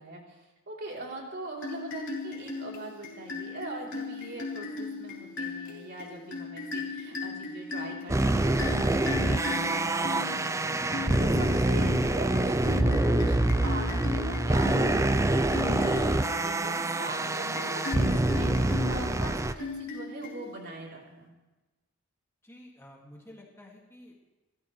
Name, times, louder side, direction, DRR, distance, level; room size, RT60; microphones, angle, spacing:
voice 1, 0.0-10.7 11.2-21.3, right 2 dB, 50° right, -2 dB, 3.5 m, -41 dB
sound 1, 1.6-20.8, left 3 dB, 55° left, 4.1 m, -38 dB
sound 2, 8.1-19.5, right 2 dB, 15° right, 0.5 m, -26 dB
voice 2, 22.4-24.2, left 1 dB, 10° left, -1 dB, 2.1 m, -51 dB
29.5 x 13.5 x 3.3 m, 1.1 s
head